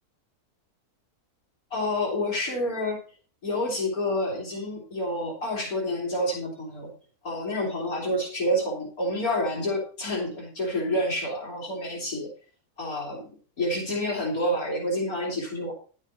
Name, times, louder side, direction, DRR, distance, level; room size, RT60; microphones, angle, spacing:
voice 1, 1.7-3.0 3.4-6.9 7.2-12.3 12.8-13.2 13.6-15.7, left 1 dB, 65° left, -2 dB, 3.3 m, -28 dB
11.0 x 7.3 x 4.3 m, 0.38 s
omnidirectional pair, 1.6 m